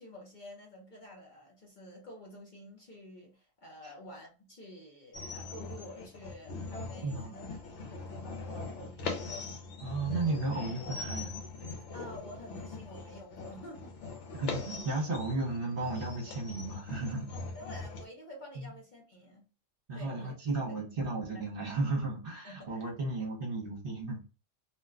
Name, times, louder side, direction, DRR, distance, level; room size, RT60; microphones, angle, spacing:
voice 1, 0.0-7.5 7.8-9.4 11.9-14.0 17.3-19.5 19.9-20.3 20.7-20.9 21.3-21.7 22.4-22.9, left 1 dB, 45° left, 0.7 m, -49 dB
sound 1, 5.1-18.0, left 3 dB, 70° left, 1.0 m, -41 dB
voice 2, 7.0-7.3 9.8-11.3 14.3-17.3 18.5-18.7 19.9-24.2, right 2 dB, 50° right, 1.0 m, -34 dB
2.5 x 2.2 x 3.5 m
omnidirectional pair, 1.3 m